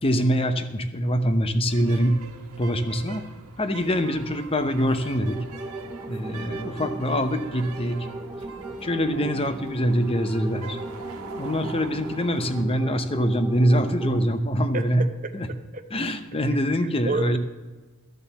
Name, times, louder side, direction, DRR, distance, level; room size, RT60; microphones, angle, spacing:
voice 1, 0.0-2.2 2.6-3.2 3.6-5.4 6.1-8.0 8.8-10.8 11.4-15.0 15.3-15.5 15.9-17.4, equal, 25° left, 9 dB, 0.8 m, -24 dB
sound 1, 1.7-12.6, right 3 dB, 90° right, 1.4 m, -42 dB
sound 2, 5.0-14.2, right 2 dB, 15° right, 0.3 m, -38 dB
voice 2, 14.7-15.9 16.5-16.6 16.8-17.4, right 2 dB, 35° right, 7 dB, 0.8 m, -32 dB
12.0 x 7.1 x 6.9 m, 1.3 s
head